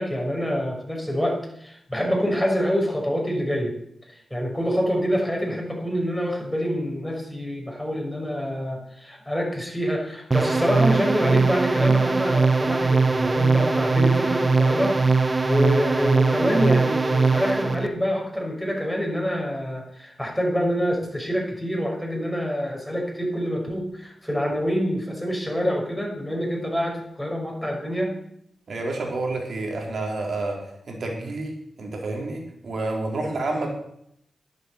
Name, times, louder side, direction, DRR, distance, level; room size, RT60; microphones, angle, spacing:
voice 1, 0.0-3.7 4.1-28.1, equal, 5° left, -1 dB, 6.2 m, -26 dB
sound 1, 10.3-17.9, right 4 dB, 35° right, 1.2 m, -21 dB
voice 2, 28.7-33.8, right 2 dB, 70° right, 1 dB, 3.8 m, -29 dB
10.5 x 8.4 x 8.1 m, 0.73 s
cardioid pair, 45°, 0 cm